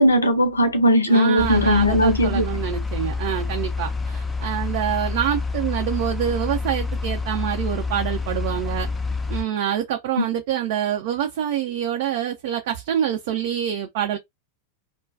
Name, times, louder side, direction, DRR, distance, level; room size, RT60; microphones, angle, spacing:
voice 1, 0.0-2.5 10.2-10.3, equal, 80° left, 0.6 m, -18 dB
voice 2, 1.1-8.9 9.3-14.2, right 10 dB, 50° right, 0.4 m, -26 dB
sound 1, 1.4-9.4, left 4 dB, 15° left, 0.5 m, -28 dB
2.2 x 2.2 x 2.5 m
figure-of-eight pair, 90°, 0 cm